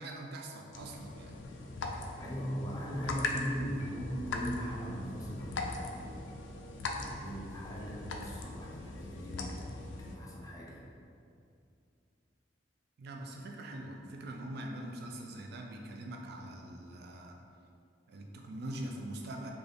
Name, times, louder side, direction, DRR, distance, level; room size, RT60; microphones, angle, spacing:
voice 1, 0.0-1.4 13.0-17.4 18.1-19.5, right 1 dB, 60° right, 1 dB, 0.4 m, -43 dB
sound 1, 0.7-10.2, left 3 dB, 80° left, 0.4 m, -40 dB
voice 2, 2.2-6.2 6.8-10.8, equal, 20° left, -4 dB, 0.5 m, -39 dB
3.4 x 2.4 x 3.8 m, 2.5 s
head